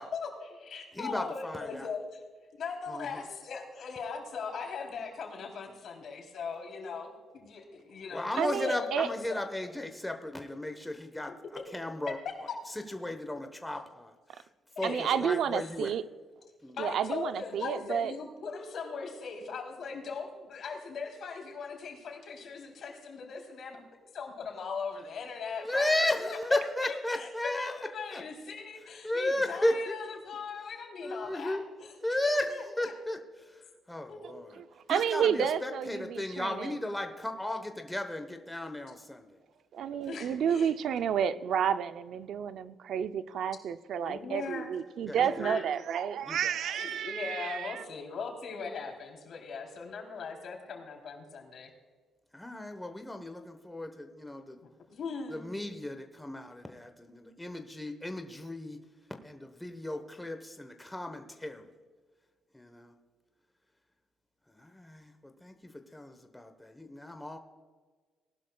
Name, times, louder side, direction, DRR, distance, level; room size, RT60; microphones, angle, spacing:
voice 1, 0.0-2.2 2.6-9.4 11.3-11.4 14.8-15.3 16.7-23.8 24.1-26.4 26.8-31.9 32.2-32.9 34.1-34.3 40.1-40.7 44.1-44.7 45.3-45.6 46.6-51.7 54.6-55.5, left 5 dB, 60° left, 2 dB, 3.4 m, -39 dB
voice 2, 0.9-1.9 2.9-3.2 8.1-11.3 11.7-12.2 12.9-14.5 14.8-15.9 16.6-16.8 25.6-27.8 28.1-28.2 29.0-30.0 31.0-31.6 32.0-33.6 33.9-34.5 34.9-39.3 45.1-45.5 46.2-46.6 52.3-54.6 55.3-58.8 59.2-61.7 62.5-62.9 64.5-67.4, left 1 dB, 10° left, 6 dB, 1.1 m, -35 dB
voice 3, 8.4-9.1 14.8-16.0 16.8-18.1 34.9-36.7 39.7-47.8, right 8 dB, 70° right, 12 dB, 0.5 m, -31 dB
19.0 x 11.5 x 2.3 m, 1.5 s
cardioid pair, 90°, 0 cm